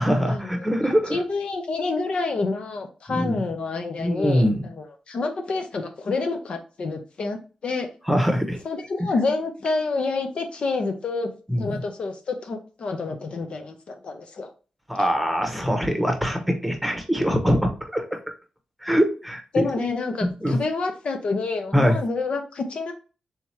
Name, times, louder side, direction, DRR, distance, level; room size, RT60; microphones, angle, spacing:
voice 1, 0.0-1.2 3.1-3.4 4.0-4.7 8.1-8.6 11.5-11.8 14.9-18.2 18.8-19.6 20.2-20.6 21.7-22.0, equal, ahead, 4 dB, 1.0 m, -23 dB
voice 2, 1.1-7.9 8.6-11.3 11.6-14.5 19.5-22.9, left 3 dB, 60° left, 6 dB, 0.6 m, -28 dB
3.5 x 2.9 x 4.4 m, 0.35 s
cardioid pair, 95°, 2 cm